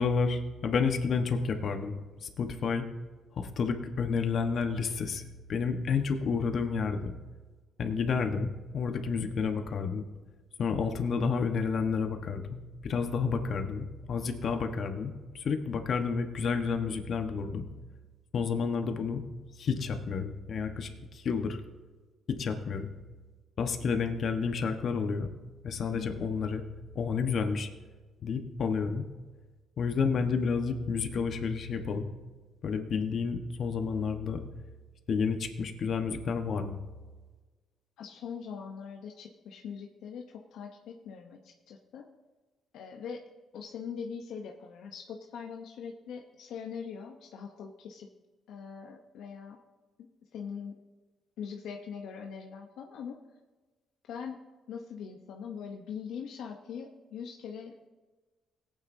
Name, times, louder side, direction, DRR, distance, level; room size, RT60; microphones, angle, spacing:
voice 1, 0.0-2.9 3.4-7.1 7.8-10.0 10.6-17.7 18.3-19.2 19.6-21.6 22.3-22.9 23.6-25.3 25.6-26.6 26.9-27.7 28.2-29.0 29.8-32.1 32.6-34.4 35.1-36.8, left 5 dB, 55° left, 6 dB, 1.2 m, -30 dB
voice 2, 25.9-26.3 38.0-42.1 42.7-43.2 43.5-48.1 48.5-49.6 50.0-50.8 51.4-53.2 54.1-54.4 54.7-57.9, left 6 dB, 80° left, 2 dB, 0.8 m, -42 dB
18.0 x 8.9 x 2.7 m, 1.3 s
cardioid pair, 90°, 0 cm